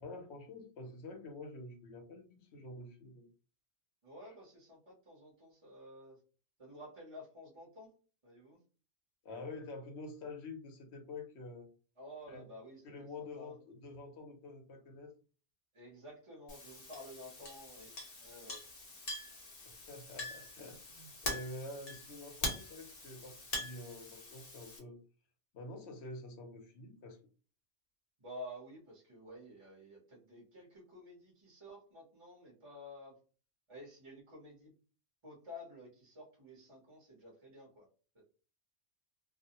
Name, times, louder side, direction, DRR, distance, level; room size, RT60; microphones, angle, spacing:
voice 1, 0.0-3.2 9.2-11.7 12.3-12.5 12.8-15.1 19.6-25.0 25.5-27.2, left 2 dB, 70° left, 4 dB, 0.9 m, -48 dB
voice 2, 4.0-6.2 6.6-7.9 8.2-8.6 12.0-13.6 15.7-17.9 18.2-18.6 28.2-33.2 33.7-34.7 35.2-37.9 38.1-38.2, left 1 dB, 30° right, -3 dB, 0.9 m, -52 dB
Chink clink, 16.5-24.8, left 1 dB, 40° left, 0.7 m, -44 dB
2.4 x 2.0 x 2.8 m, 0.37 s
omnidirectional pair, 1.2 m